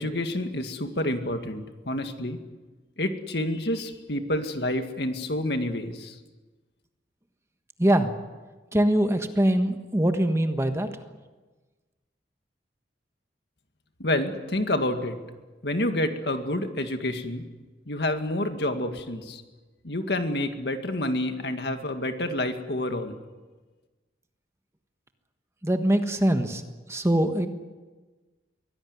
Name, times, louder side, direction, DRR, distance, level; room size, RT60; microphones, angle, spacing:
voice 1, 0.0-2.4 3.0-6.1 14.0-15.2 15.6-17.4 17.9-19.4 19.8-23.1, left 1 dB, 60° left, 6 dB, 2.1 m, -28 dB
voice 2, 7.8-8.1 8.7-10.9 25.6-26.6 26.9-27.5, right 1 dB, 15° right, 7 dB, 1.4 m, -23 dB
23.0 x 17.0 x 9.7 m, 1.3 s
head